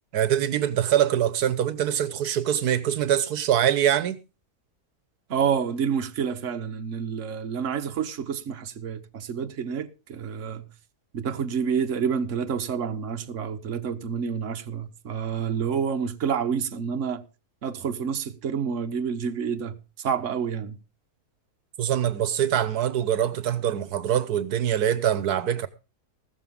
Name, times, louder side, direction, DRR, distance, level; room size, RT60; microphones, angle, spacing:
voice 1, 0.1-4.2 21.8-25.7, right 10 dB, 80° right, 1.4 m, -24 dB
voice 2, 5.3-10.6 11.1-17.2 17.6-20.8, right 7 dB, 55° right, 1.4 m, -28 dB
15.5 x 13.0 x 3.6 m
omnidirectional pair, 1.6 m